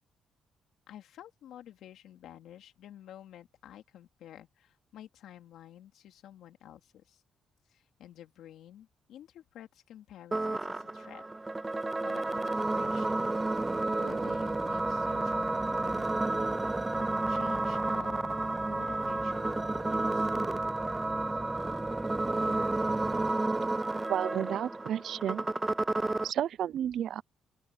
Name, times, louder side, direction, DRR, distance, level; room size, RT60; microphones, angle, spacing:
voice 1, 0.9-7.2 7.7-11.2 12.0-13.3 13.6-16.3 16.9-18.3 18.7-20.3, left 11 dB, 80° left, 2.8 m, -51 dB
sound 1, 10.3-26.3, right 2 dB, 20° right, 0.5 m, -31 dB
sound 2, 14.0-23.3, equal, ahead, 7.0 m, -45 dB
voice 2, 24.1-25.4 26.2-27.2, right 10 dB, 70° right, 0.5 m, -32 dB
open air
cardioid pair, 90°, 0 cm